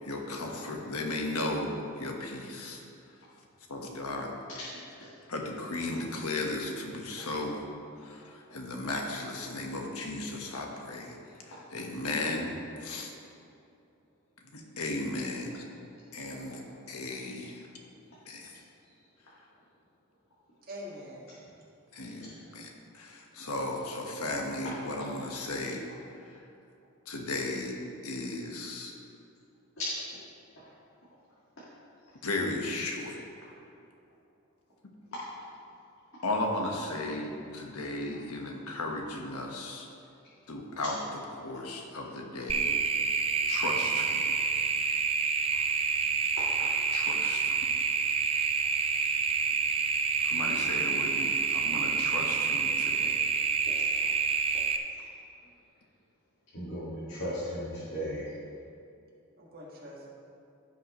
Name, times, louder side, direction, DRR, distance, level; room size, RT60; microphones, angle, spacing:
voice 1, 0.0-2.8 3.7-4.3 5.3-7.6 8.0-12.5 12.8-13.1 14.5-15.6 16.1-16.6 16.9-17.7 18.2-18.6 21.9-25.9 26.2-26.5 27.1-28.9 32.2-33.2 36.2-39.9 40.5-42.7 43.5-44.2 46.9-47.7 50.2-53.2, left 2 dB, 85° left, 1 dB, 1.3 m, -35 dB
voice 2, 20.6-21.5 59.4-60.1, equal, 40° right, -4 dB, 1.8 m, -44 dB
sound 1, 42.5-54.8, right 5 dB, 25° right, 0.4 m, -28 dB
voice 3, 56.5-58.2, equal, 60° left, -9 dB, 1.8 m, -36 dB
15.0 x 5.9 x 3.1 m, 2.6 s
head